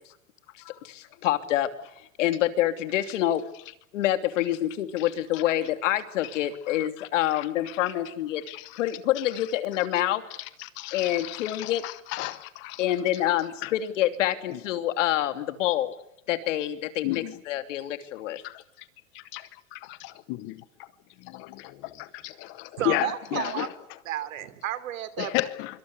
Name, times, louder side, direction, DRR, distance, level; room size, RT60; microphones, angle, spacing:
voice 1, 0.8-1.7 2.2-3.4 3.9-8.4 8.8-10.2 10.9-11.8 12.8-15.9 16.3-18.4, left 13 dB, 65° left, 3.1 m, -26 dB
voice 2, 5.0-5.4 6.3-6.4 6.7-7.9 8.5-8.8 9.2-9.4 10.4-12.9 13.1-13.7 14.5-14.6 17.0-17.4 18.4-18.9 19.1-20.9 21.2-24.0 25.2-25.8, left 17 dB, 30° left, 1.0 m, -35 dB
voice 3, 22.8-23.7 24.0-25.4, right 12 dB, 70° right, 3.4 m, -32 dB
25.5 x 24.5 x 8.2 m
supercardioid pair, 160°, 41 cm